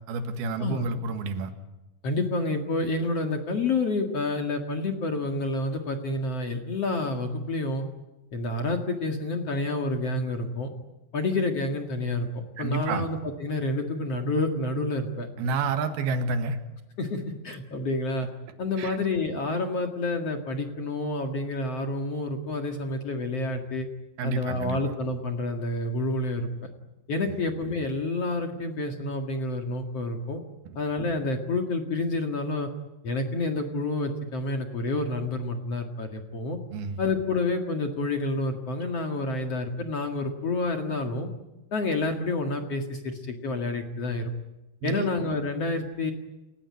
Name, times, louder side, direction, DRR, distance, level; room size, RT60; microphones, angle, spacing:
voice 1, 0.1-1.5 12.6-13.1 15.4-16.6 18.8-19.0 24.2-24.8 36.7-37.0 44.8-45.1, right 3 dB, 65° right, 8 dB, 3.3 m, -29 dB
voice 2, 2.0-7.8 8.3-10.7 11.1-15.3 17.0-18.3 18.6-23.9 24.2-26.7 27.1-30.4 30.8-32.7 33.0-36.6 37.0-41.3 41.7-44.3 44.8-46.1, left 2 dB, 50° left, 4 dB, 1.9 m, -29 dB
29.5 x 16.5 x 9.6 m, 1.0 s
omnidirectional pair, 5.4 m